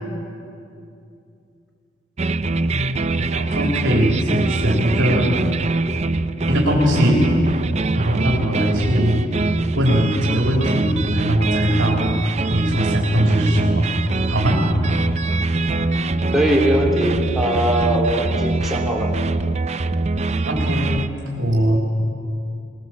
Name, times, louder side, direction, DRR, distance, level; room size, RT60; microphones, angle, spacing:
sound 1, 2.2-21.1, right 2 dB, 35° right, 0.5 m, -23 dB
voice 1, 2.7-5.4 6.3-7.3 7.9-9.3 9.7-12.1 12.5-13.9 14.3-14.6 20.5-21.8, equal, 75° right, -2 dB, 3.2 m, -20 dB
voice 2, 16.3-19.1, right 1 dB, ahead, -2 dB, 3.0 m, -20 dB
21.0 x 20.0 x 7.4 m, 2.6 s
head